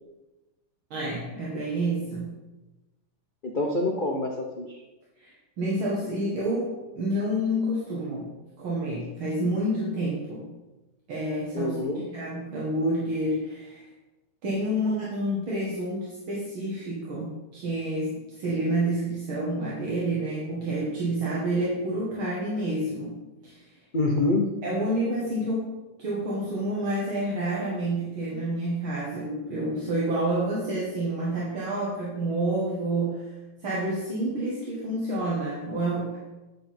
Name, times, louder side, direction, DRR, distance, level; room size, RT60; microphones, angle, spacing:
voice 1, 0.9-2.3 5.2-5.3 5.6-8.3 8.6-10.5 11.1-11.8 12.1-13.8 14.4-23.2 23.4-23.6 24.6-25.7 26.0-33.3 33.6-36.2, right 1 dB, 70° right, -6 dB, 2.4 m, -28 dB
voice 2, 3.4-4.8 11.5-12.0 23.9-24.5, left 2 dB, 85° left, 0 dB, 0.4 m, -26 dB
10.0 x 6.6 x 4.3 m, 1.1 s
omnidirectional pair, 2.3 m